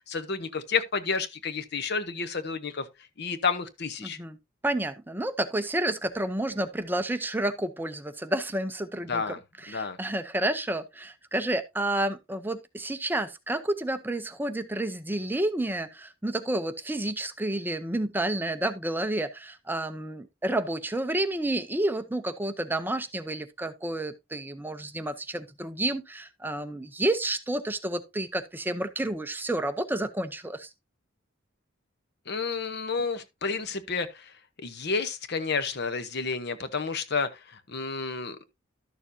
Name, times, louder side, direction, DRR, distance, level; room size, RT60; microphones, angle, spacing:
voice 1, 0.1-2.8 3.2-4.2 9.1-9.4 9.7-10.0 32.3-34.3 34.6-38.4, left 5 dB, 55° left, 0.9 m, -30 dB
voice 2, 4.0-4.4 4.6-9.4 9.6-30.7, right 1 dB, 10° right, 0.6 m, -30 dB
12.0 x 6.8 x 2.7 m
head